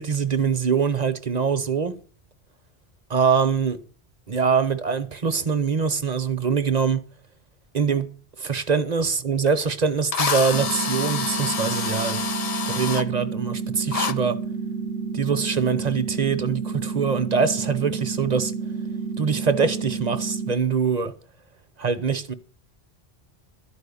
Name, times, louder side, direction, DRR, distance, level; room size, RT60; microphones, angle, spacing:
voice 1, 0.0-1.9 3.1-3.8 4.3-7.0 7.7-8.1 8.4-12.2 12.7-14.4 15.1-18.5 19.2-21.1 21.8-22.3, right 6 dB, 45° right, 0.9 m, -23 dB
Drill, 9.5-9.6 10.1-13.0 13.9-14.1, left 6 dB, 45° left, 0.6 m, -27 dB
sound 1, 10.5-20.5, right 5 dB, 80° right, 1.0 m, -30 dB
12.5 x 5.0 x 8.4 m
omnidirectional pair, 1.1 m